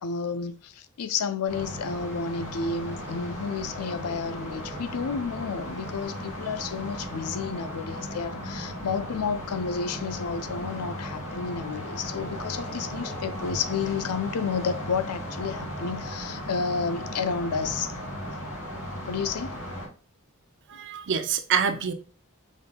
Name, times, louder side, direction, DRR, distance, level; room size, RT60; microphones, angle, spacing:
voice 1, 0.0-17.9 19.1-19.6, left 5 dB, 85° left, 0.5 m, -31 dB
sound 1, 1.5-19.9, equal, 65° left, 2.3 m, -36 dB
voice 2, 20.7-21.9, right 7 dB, 55° right, 0.6 m, -26 dB
5.2 x 4.1 x 2.2 m
head